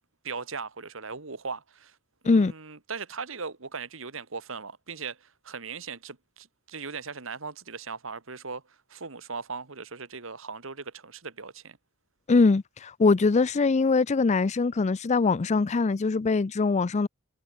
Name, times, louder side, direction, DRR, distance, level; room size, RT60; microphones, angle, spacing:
voice 1, 0.2-2.0 2.2-11.8, right 5 dB, 70° right, 2.0 m, -39 dB
voice 2, 12.3-17.1, left 4 dB, 35° left, 0.4 m, -22 dB
head